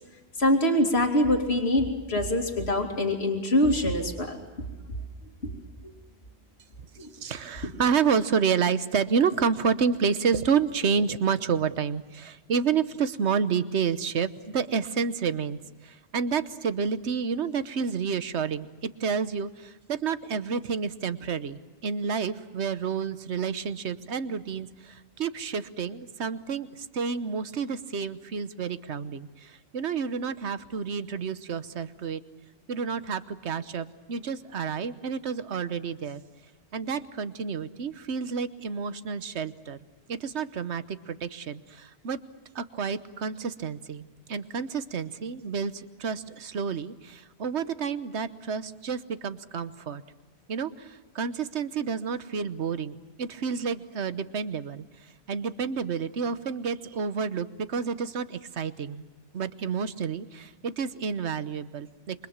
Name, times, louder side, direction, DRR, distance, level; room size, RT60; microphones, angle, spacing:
voice 1, 0.4-4.4 5.4-5.5 7.0-7.1, left 1 dB, 70° left, 3 dB, 3.0 m, -24 dB
voice 2, 7.1-32.2 32.7-36.2 36.7-39.8 40.1-42.2 42.5-50.0 50.5-59.0 59.3-62.3, right 6 dB, 80° right, 13 dB, 1.3 m, -29 dB
27.5 x 24.5 x 7.3 m, 1.2 s
omnidirectional pair, 1.1 m